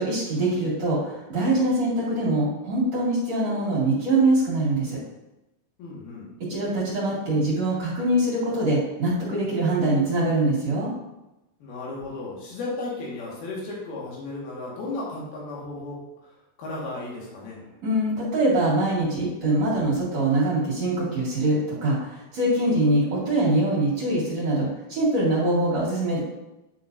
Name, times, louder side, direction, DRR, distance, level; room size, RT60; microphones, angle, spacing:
voice 1, 0.0-5.0 6.5-10.9 17.8-26.2, right 1 dB, 50° right, -8 dB, 3.1 m, -23 dB
voice 2, 5.8-6.3 11.6-17.6, left 2 dB, 90° left, -4 dB, 3.7 m, -34 dB
9.9 x 6.3 x 2.6 m, 0.96 s
omnidirectional pair, 4.2 m